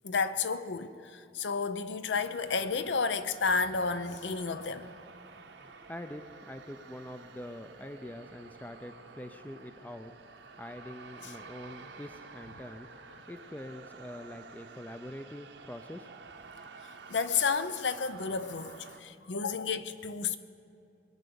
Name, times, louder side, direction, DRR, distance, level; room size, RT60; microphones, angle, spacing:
voice 1, 0.0-4.9 11.2-11.3 17.1-20.4, left 5 dB, 80° left, 0.7 m, -31 dB
sound 1, 2.2-19.0, right 4 dB, 80° right, 1.0 m, -51 dB
voice 2, 5.3-13.0 13.3-16.1, left 1 dB, 10° left, 0.4 m, -45 dB
21.5 x 9.1 x 6.9 m
head